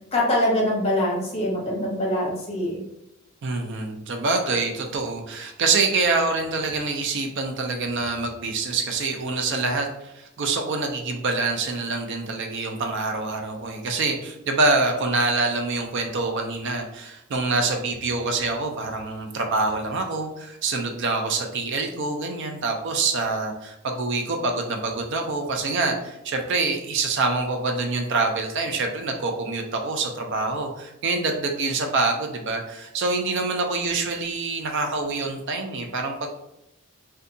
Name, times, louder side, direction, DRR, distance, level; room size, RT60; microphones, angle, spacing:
voice 1, 0.1-2.8, left 1 dB, 30° left, -3 dB, 0.8 m, -24 dB
voice 2, 3.4-36.3, right 3 dB, 55° right, 3 dB, 0.4 m, -26 dB
2.6 x 2.3 x 2.6 m, 0.84 s
head